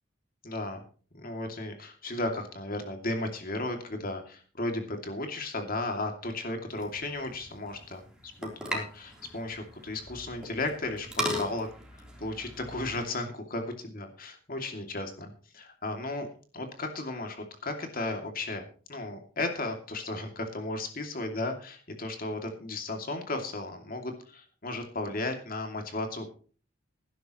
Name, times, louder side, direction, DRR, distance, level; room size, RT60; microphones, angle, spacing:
voice 1, 0.4-0.8 1.1-8.0 8.4-11.7 12.2-16.3 16.5-26.3, left 2 dB, 45° left, 4 dB, 2.6 m, -35 dB
sound 1, 6.7-13.1, equal, 5° right, 3.6 m, -38 dB
19.5 x 11.0 x 3.1 m, 0.40 s
head